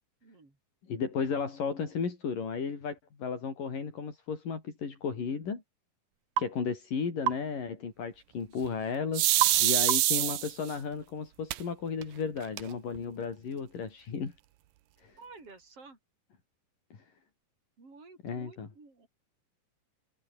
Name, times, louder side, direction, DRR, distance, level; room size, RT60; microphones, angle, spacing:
voice 1, 0.2-0.6 15.2-16.0 17.8-19.1, right 3 dB, 45° right, 8.3 m, -52 dB
voice 2, 0.9-5.6 6.4-9.3 9.6-14.3 15.0-15.1 18.2-18.7, left 5 dB, 80° left, 6.2 m, -34 dB
sound 1, 6.4-6.5 7.3-7.5 9.4-9.6 9.9-10.2, right 11 dB, 65° right, 2.4 m, -29 dB
sound 2, 9.1-10.7 11.5-11.6 12.0-12.1 12.4-13.0, right 15 dB, 85° right, 2.8 m, -25 dB
omnidirectional pair, 3.8 m